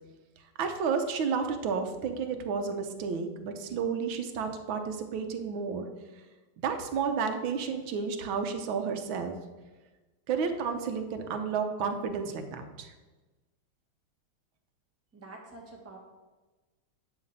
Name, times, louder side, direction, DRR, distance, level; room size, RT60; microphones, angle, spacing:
voice 1, 0.6-5.9 6.6-9.3 10.3-12.9, right 6 dB, 85° right, 6 dB, 1.6 m, -31 dB
voice 2, 15.1-16.0, right 2 dB, 10° right, -1 dB, 1.2 m, -47 dB
11.5 x 3.8 x 6.5 m, 1.2 s
omnidirectional pair, 2.2 m